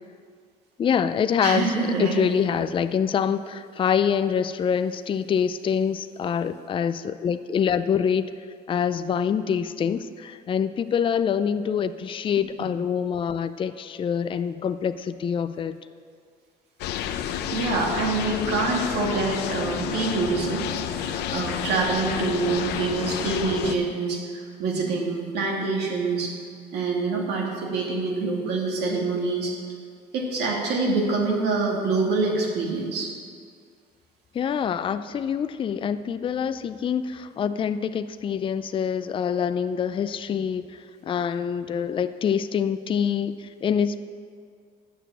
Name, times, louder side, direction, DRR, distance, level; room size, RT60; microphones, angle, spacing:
voice 1, 0.8-8.3 8.7-15.8 34.3-44.0, left 7 dB, 30° left, 11 dB, 0.4 m, -25 dB
voice 2, 1.4-2.2 17.5-26.3 26.7-29.5 30.1-33.1, right 3 dB, 80° right, -1 dB, 2.3 m, -26 dB
sound 1, 16.8-23.7, left 9 dB, 85° left, 0.6 m, -30 dB
8.9 x 6.8 x 7.5 m, 2.1 s
cardioid pair, 110°, 17 cm